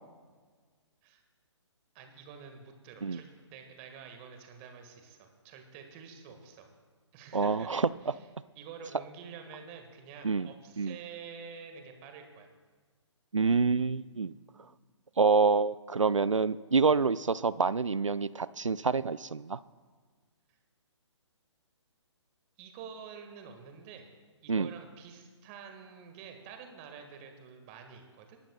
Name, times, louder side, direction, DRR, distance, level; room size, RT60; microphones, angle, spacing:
voice 1, 1.9-6.7 7.1-7.7 8.0-8.2 8.5-12.5 22.6-24.1 24.4-28.4, right 6 dB, 25° right, 5 dB, 1.5 m, -48 dB
voice 2, 7.3-7.9 10.2-10.5 10.8-10.9 13.3-14.4 15.2-19.6 24.5-24.7, right 4 dB, 90° right, 17 dB, 0.4 m, -27 dB
27.0 x 12.0 x 2.2 m, 1.5 s
figure-of-eight pair, 135°, 16 cm